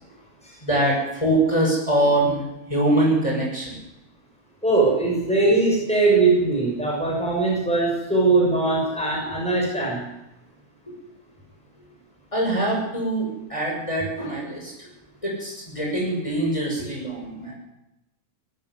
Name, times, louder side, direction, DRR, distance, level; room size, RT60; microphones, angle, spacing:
voice 1, 0.6-2.4 2.7-3.8 12.3-14.9 15.2-17.5, right 1 dB, 20° left, -3 dB, 6.9 m, -23 dB
voice 2, 4.6-10.0, right 3 dB, 5° left, -2 dB, 6.6 m, -21 dB
19.0 x 13.5 x 9.9 m, 0.90 s
omnidirectional pair, 1.6 m